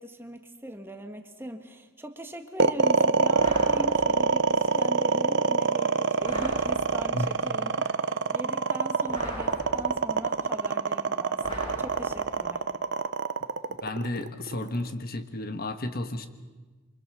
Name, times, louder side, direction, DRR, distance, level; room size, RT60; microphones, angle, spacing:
voice 1, 0.0-12.7, right 1 dB, 10° right, 5 dB, 1.6 m, -40 dB
sound 1, 2.6-14.9, right 4 dB, 55° right, 0.8 m, -25 dB
sound 2, 3.3-4.4 6.2-7.3 9.1-10.2 11.4-12.5, equal, 25° left, 7.9 m, -39 dB
voice 2, 13.8-16.3, left 1 dB, 45° left, 8 dB, 1.4 m, -32 dB
28.5 x 25.0 x 6.2 m, 1.3 s
head